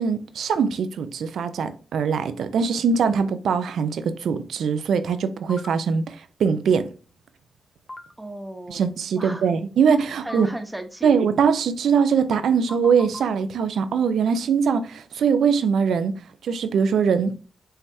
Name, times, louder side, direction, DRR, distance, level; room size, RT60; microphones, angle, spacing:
voice 1, 0.0-6.9 8.7-10.5 11.0-16.2 16.4-17.3, right 6 dB, 85° right, 0.6 m, -22 dB
sound 1, 5.5-5.7 7.9-8.0 10.3-10.4 12.7-13.2, left 2 dB, 25° left, 0.7 m, -37 dB
voice 2, 8.2-8.9 9.2-9.4 10.2-11.2, right 1 dB, 10° right, 1.0 m, -35 dB
5.6 x 3.3 x 2.7 m
cardioid pair, 70°, 0 cm